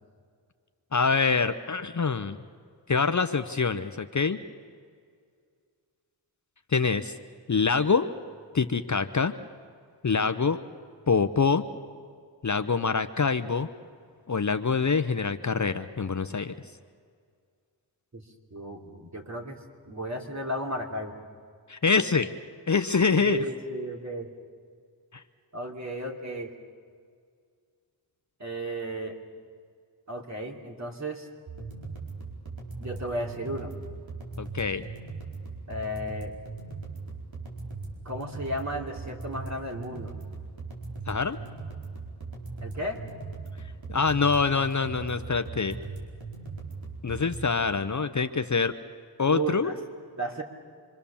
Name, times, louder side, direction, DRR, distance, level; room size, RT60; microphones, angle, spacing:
voice 1, 0.9-2.4 2.9-4.4 6.7-7.1 7.5-8.1 8.5-9.3 10.0-10.6 11.1-11.6 12.4-13.7 14.3-16.5 21.7-22.3 22.7-23.4 25.1-25.2 34.4-34.8 41.1-41.4 43.9-45.8 47.0-48.7 49.2-49.7, left 5 dB, 40° left, 9 dB, 0.8 m, -25 dB
voice 2, 18.5-21.2 23.0-24.3 25.5-26.5 28.4-29.2 30.1-31.3 32.8-33.7 35.7-36.4 38.0-40.2 42.6-43.0 49.3-49.8 50.2-50.4, right 1 dB, 35° right, 1 dB, 3.0 m, -34 dB
sound 1, 31.5-47.5, right 3 dB, 85° right, 4.7 m, -39 dB
27.0 x 24.0 x 7.1 m, 2.1 s
wide cardioid pair, 90°, 46 cm